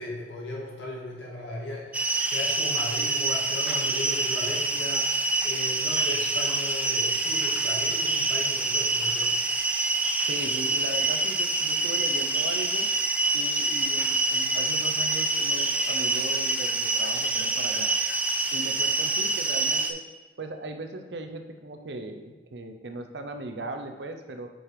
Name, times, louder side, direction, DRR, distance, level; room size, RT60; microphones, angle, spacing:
voice 1, 0.0-9.3, left 1 dB, 85° left, -3 dB, 2.0 m, -37 dB
sound 1, 1.9-19.9, right 2 dB, 10° right, 0.4 m, -26 dB
voice 2, 10.2-12.9 13.3-17.9 18.5-20.0 20.4-24.5, right 2 dB, 70° right, 5 dB, 0.7 m, -38 dB
6.2 x 4.9 x 4.8 m, 1.3 s
head